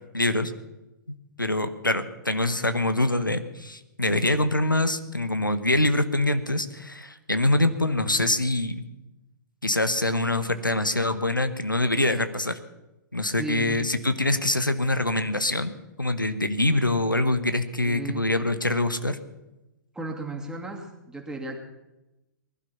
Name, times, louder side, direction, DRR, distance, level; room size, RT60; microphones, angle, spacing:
voice 1, 0.1-0.5 1.1-8.8 9.6-12.6 13.1-15.7 16.0-19.2, left 2 dB, 90° left, 10 dB, 1.1 m, -24 dB
voice 2, 13.2-13.8 17.8-18.3 19.9-21.6, right 2 dB, 5° right, 0 dB, 2.5 m, -35 dB
20.5 x 12.0 x 5.8 m, 1.0 s
figure-of-eight pair, 115°, 11 cm